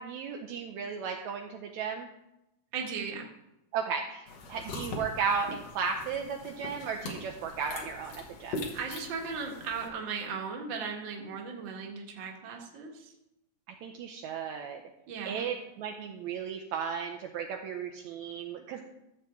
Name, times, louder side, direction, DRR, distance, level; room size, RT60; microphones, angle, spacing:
voice 1, 0.0-2.1 3.7-8.6 13.8-14.8 15.3-18.8, right 6 dB, 75° right, 3 dB, 1.8 m, -35 dB
voice 2, 2.7-3.3 8.7-13.1 15.1-15.5, right 5 dB, 50° right, 1 dB, 1.7 m, -37 dB
sound 1, 4.3-9.9, left 2 dB, 60° left, 2.3 m, -41 dB
14.5 x 7.4 x 3.6 m, 0.90 s
omnidirectional pair, 3.7 m